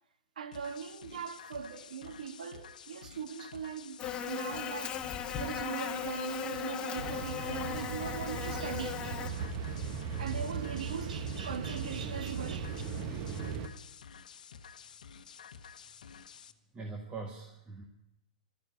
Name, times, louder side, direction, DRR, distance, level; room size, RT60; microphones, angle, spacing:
voice 1, 0.4-4.0 4.3-9.2 10.2-12.7, right 7 dB, 75° right, 1.5 m, -40 dB
sound 1, 0.5-16.5, left 7 dB, 80° left, 1.0 m, -51 dB
Buzz, 4.0-9.3, left 9 dB, 25° left, 1.4 m, -37 dB
sound 2, 7.0-13.7, right 6 dB, 50° right, 1.5 m, -38 dB
voice 2, 16.7-17.8, right 3 dB, 25° right, 2.0 m, -42 dB
12.5 x 10.5 x 9.7 m
hypercardioid pair, 115°, 4 cm